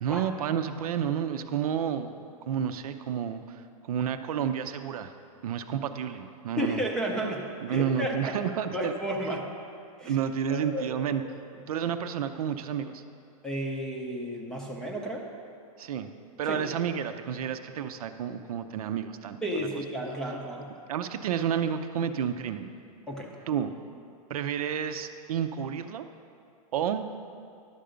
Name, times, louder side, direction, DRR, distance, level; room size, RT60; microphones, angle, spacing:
voice 1, 0.0-5.1 5.4-6.8 7.6-8.9 9.3-9.4 10.1-11.2 11.7-13.0 15.8-16.1 16.4-19.7 20.9-22.7 23.5-23.7 24.3-26.1 26.7-27.1, right 8 dB, 70° right, 8 dB, 0.6 m, -30 dB
voice 2, 6.6-8.4 8.7-9.4 10.0-10.2 10.5-11.3 13.4-15.3 16.5-16.6 19.4-20.7 23.1-23.4, equal, 5° left, 0 dB, 0.6 m, -32 dB
11.5 x 6.8 x 5.1 m, 2.5 s
supercardioid pair, 165°, 20 cm